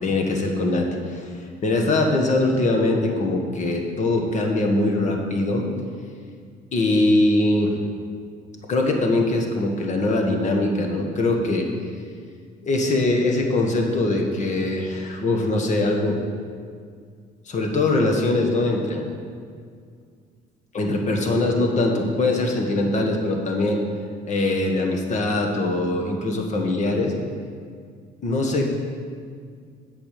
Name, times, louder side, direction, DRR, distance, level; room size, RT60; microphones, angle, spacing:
voice 1, 0.0-1.3 1.6-5.6 6.7-7.7 8.7-11.7 12.6-16.2 17.5-19.0 20.7-23.8 24.3-27.1 28.2-28.7, left 2 dB, 45° left, 2 dB, 1.6 m, -22 dB
8.7 x 7.2 x 6.8 m, 2.1 s
cardioid pair, 110°, 17 cm